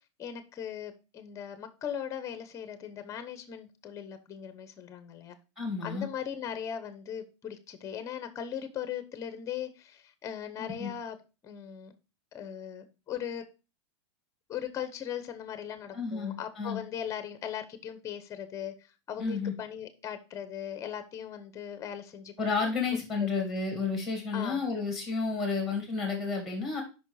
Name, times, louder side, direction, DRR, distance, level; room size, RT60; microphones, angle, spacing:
voice 1, 0.2-5.4 5.8-11.2 11.4-11.9 12.3-13.4 14.5-22.3 22.9-23.5 24.3-24.6, left 9 dB, 20° left, 0.8 m, -39 dB
voice 2, 5.6-6.1 10.6-10.9 15.9-16.8 19.2-19.5 22.4-26.8, left 4 dB, ahead, 2.2 m, -31 dB
5.4 x 4.3 x 4.7 m
supercardioid pair, 140°, 15 cm